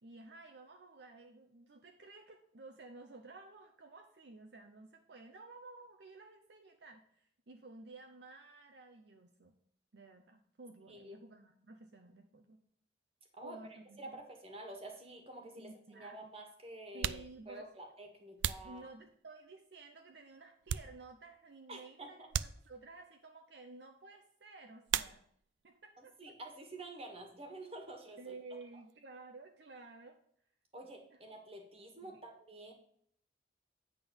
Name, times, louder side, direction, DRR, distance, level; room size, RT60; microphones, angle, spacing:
voice 1, 0.0-9.6 9.9-12.6 13.4-14.2 15.6-16.3 16.9-17.7 18.6-25.2 25.6-26.1 28.2-30.2 32.0-32.2, right 3 dB, 65° right, 4 dB, 0.7 m, -53 dB
voice 2, 10.9-11.2 13.4-13.6 14.0-18.9 21.7-22.3 26.0-28.3 30.7-32.7, right 2 dB, 35° right, 3 dB, 1.6 m, -49 dB
sound 1, 15.1-15.2 16.1-16.2 16.8-19.5 20.0-21.4 21.7-21.8 22.3-23.1 24.8-25.6 25.9-26.6 26.9-29.0, right 10 dB, 90° right, 0.4 m, -41 dB
9.0 x 3.8 x 6.9 m, 0.65 s
head